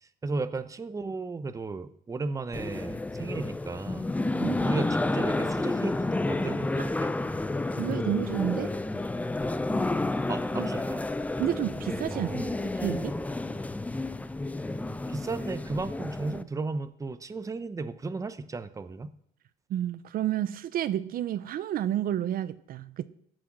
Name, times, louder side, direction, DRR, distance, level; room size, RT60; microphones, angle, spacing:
voice 1, 0.2-4.1 4.6-7.1 10.3-11.0 12.1-12.5 15.1-19.1, right 3 dB, 20° right, 11 dB, 0.8 m, -35 dB
sound 1, 2.5-16.4, left 2 dB, 10° left, 0.5 m, -30 dB
voice 2, 7.8-8.7 10.6-10.7 11.4-13.1 19.7-23.0, right 11 dB, 60° right, 13 dB, 0.6 m, -30 dB
14.5 x 6.3 x 6.1 m, 0.68 s
cardioid pair, 110°, 17 cm